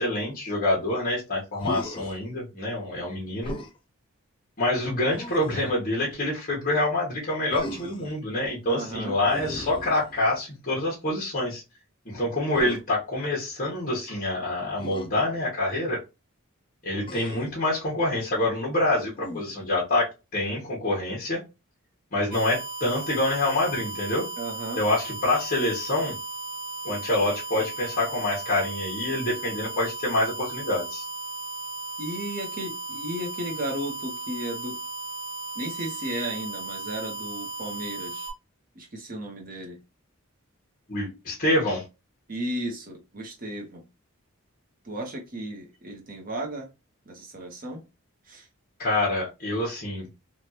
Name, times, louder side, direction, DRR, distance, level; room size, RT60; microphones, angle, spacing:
voice 1, 0.0-3.5 4.6-11.6 12.0-16.0 16.8-20.0 20.3-21.4 22.1-24.3 24.8-26.2 26.8-31.0 40.9-41.8 48.8-50.1, left 1 dB, 40° left, -4 dB, 1.1 m, -26 dB
Human voice, 1.6-2.2 3.4-3.8 5.1-5.8 7.5-8.1 9.2-10.5 12.5-12.8 14.8-15.1 17.0-17.6 19.1-19.7, equal, 25° left, 0.4 m, -37 dB
voice 2, 8.6-9.1 24.4-24.8 32.0-34.8 35.5-38.3 38.7-39.8 42.3-43.8 44.8-46.7 47.1-47.8 48.2-48.5, right 1 dB, 40° right, 1 dB, 0.9 m, -34 dB
sound 1, 22.3-38.3, right 3 dB, 80° right, 1.0 m, -36 dB
3.3 x 2.4 x 2.8 m, 0.27 s
head